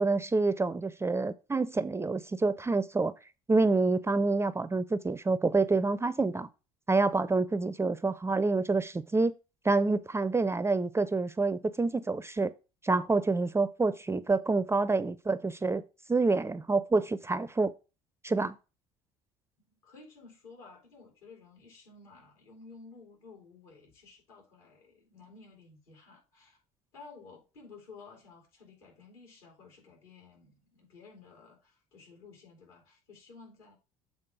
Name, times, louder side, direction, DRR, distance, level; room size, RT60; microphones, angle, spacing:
voice 1, 0.0-3.1 3.5-6.5 6.9-9.3 9.6-12.5 12.8-15.8 16.1-17.7 18.2-18.5, right 3 dB, 15° right, 0.4 m, -27 dB
voice 2, 19.6-26.6 26.9-33.7, left 4 dB, 70° left, 3.5 m, -54 dB
7.6 x 3.8 x 4.9 m
figure-of-eight pair, 60°, 18 cm